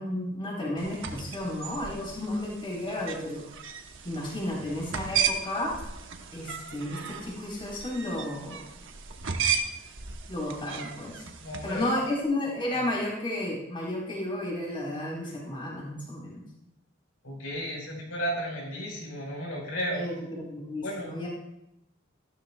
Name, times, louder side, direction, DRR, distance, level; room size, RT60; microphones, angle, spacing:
voice 1, 0.0-3.4 4.0-5.7 6.3-8.7 10.3-11.1 11.6-16.4 19.9-21.3, left 1 dB, 25° left, -4 dB, 4.1 m, -32 dB
sound 1, 0.8-12.1, right 6 dB, 65° right, 1.0 m, -35 dB
voice 2, 11.4-11.9 17.2-20.1 20.8-21.3, equal, 80° left, -2 dB, 4.7 m, -34 dB
13.5 x 12.0 x 2.3 m, 0.85 s
head